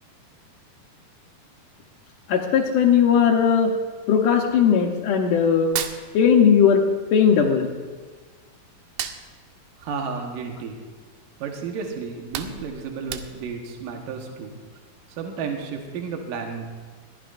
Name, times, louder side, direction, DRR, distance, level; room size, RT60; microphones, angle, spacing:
voice 1, 2.3-3.8 4.1-5.8 6.1-6.8 7.1-7.7, left 7 dB, 70° left, 2 dB, 2.2 m, -18 dB
Hands, 5.7-6.8 7.1-8.4 8.8-11.1 11.5-11.7 12.0-13.7, right 10 dB, 85° right, 2.7 m, -34 dB
voice 2, 9.8-10.8 11.4-14.6 15.1-16.7, right 5 dB, 70° right, 2 dB, 2.8 m, -32 dB
21.0 x 15.0 x 2.6 m, 1.4 s
omnidirectional pair, 4.5 m